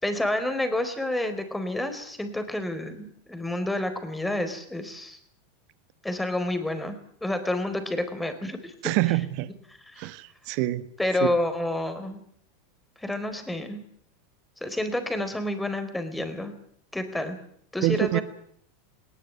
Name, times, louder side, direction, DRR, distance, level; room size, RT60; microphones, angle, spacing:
voice 1, 0.0-5.2 6.0-8.7 9.9-10.1 11.0-12.2 13.0-13.9 14.6-16.5 16.9-17.4 17.7-18.2, left 1 dB, 5° left, 8 dB, 4.4 m, -29 dB
voice 2, 8.8-9.5 10.0-10.9 17.8-18.2, right 17 dB, 55° right, 14 dB, 1.4 m, -26 dB
20.0 x 18.5 x 9.6 m, 0.66 s
hypercardioid pair, 100°, 0 cm